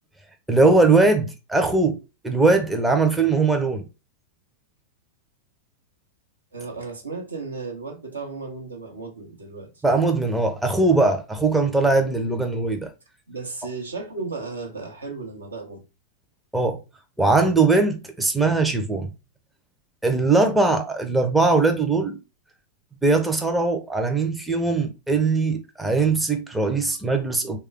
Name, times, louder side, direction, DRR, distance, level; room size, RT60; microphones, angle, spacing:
voice 1, 0.5-2.0 2.2-3.8 9.8-12.9 16.5-16.8 17.2-19.1 20.0-22.2 23.0-27.6, right 3 dB, 5° right, 0.5 m, -20 dB
voice 2, 6.5-9.8 13.3-15.8, right 4 dB, 75° right, 0.8 m, -34 dB
3.2 x 2.3 x 3.3 m
figure-of-eight pair, 90°, 0 cm